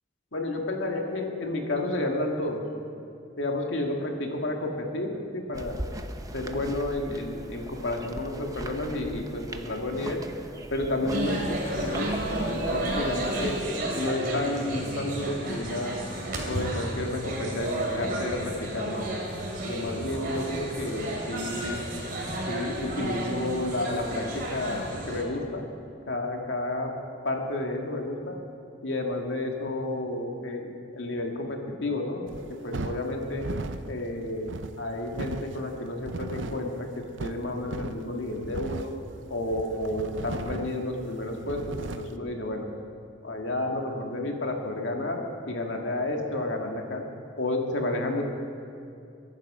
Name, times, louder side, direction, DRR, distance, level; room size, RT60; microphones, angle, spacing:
voice 1, 0.3-2.6 3.4-5.7 6.3-10.2 10.7-12.1 12.5-13.6 13.9-16.0 16.4-19.1 19.6-21.8 22.5-25.7 26.1-26.9 27.2-28.4 28.8-32.3 32.6-33.5 33.9-38.9 39.3-42.7 43.2-47.0 47.4-48.3, left 2 dB, 80° left, 1 dB, 2.1 m, -31 dB
sound 1, 5.5-13.6, right 1 dB, 20° right, 0.7 m, -40 dB
sound 2, 11.1-25.2, right 1 dB, 50° right, 3.1 m, -32 dB
sound 3, 32.3-42.2, right 3 dB, 80° right, 0.6 m, -38 dB
22.5 x 11.0 x 5.0 m, 2.5 s
head